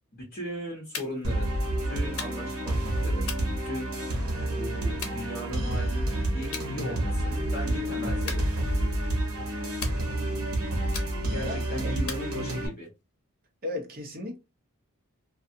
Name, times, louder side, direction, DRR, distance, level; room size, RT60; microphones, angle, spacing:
voice 1, 0.1-1.5 1.8-3.3 3.6-3.9 4.6-6.1 6.3-8.4 11.3-12.9, equal, 45° left, 1.0 m, -37 dB
sound 1, 0.9-1.4 2.2-2.6 3.3-4.2 5.0-5.8 6.5-6.7 7.1-7.5 8.3-9.0 9.8-10.4 10.9-11.5 12.1-12.9, left 6 dB, 90° left, 0.7 m, -40 dB
sound 2, 1.2-12.7, right 1 dB, 75° right, 1.0 m, -29 dB
voice 2, 13.6-14.4, left 2 dB, 45° right, 0.8 m, -34 dB
2.5 x 2.4 x 2.6 m
head